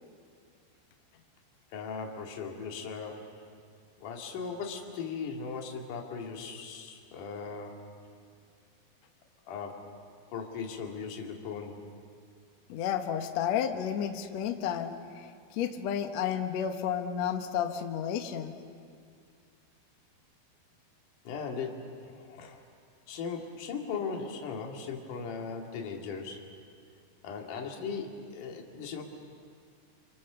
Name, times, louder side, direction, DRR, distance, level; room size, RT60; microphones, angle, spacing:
voice 1, 1.7-3.3 4.0-7.8 9.5-9.8 10.3-11.8 21.2-22.6 23.1-26.4 27.2-29.0, left 5 dB, 55° left, 1 dB, 3.4 m, -38 dB
voice 2, 12.7-15.2 15.5-18.5, left 9 dB, 75° left, 5 dB, 1.6 m, -31 dB
29.5 x 25.5 x 6.9 m, 2.2 s
omnidirectional pair, 5.1 m